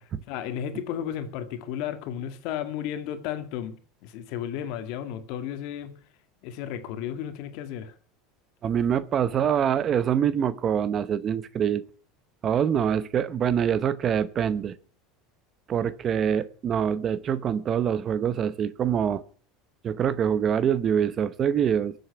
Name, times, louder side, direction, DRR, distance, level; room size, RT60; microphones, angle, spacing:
voice 1, 0.0-5.9 6.4-7.9, left 10 dB, 65° left, 2.0 m, -34 dB
voice 2, 8.6-11.8 12.4-14.8 15.7-19.2 19.8-21.9, right 8 dB, 35° right, 0.9 m, -25 dB
22.0 x 7.9 x 5.9 m
supercardioid pair, 130°, 0 cm